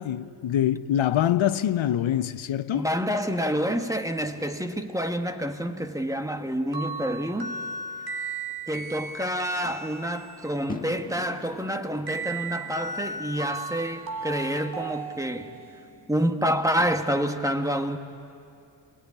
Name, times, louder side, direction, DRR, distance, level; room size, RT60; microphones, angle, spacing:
voice 1, 0.0-2.9, left 11 dB, 85° left, 0.7 m, -24 dB
voice 2, 2.7-7.6 8.7-15.5 16.1-18.0, equal, 5° right, 1.4 m, -28 dB
sound 1, 6.7-10.5 12.1-15.8, right 3 dB, 50° right, 1.9 m, -36 dB
sound 2, 10.7-16.9, left 3 dB, 20° left, 1.6 m, -45 dB
27.0 x 19.0 x 9.8 m
wide cardioid pair, 110°, 46 cm